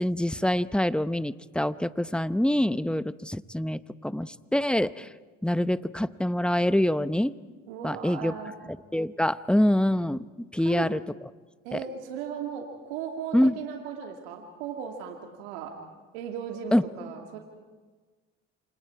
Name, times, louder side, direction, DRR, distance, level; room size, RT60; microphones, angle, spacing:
voice 1, 0.0-5.1 5.4-7.3 7.8-8.3 8.9-10.3 10.5-11.0 11.7-11.8 13.3-13.6 16.7-16.8, left 1 dB, 5° left, 14 dB, 0.7 m, -25 dB
voice 2, 7.7-8.5 10.6-10.9 11.6-15.7 16.1-17.4, right 8 dB, 85° right, 2 dB, 2.5 m, -37 dB
29.5 x 26.0 x 4.8 m, 1.4 s
supercardioid pair, 75°, 32 cm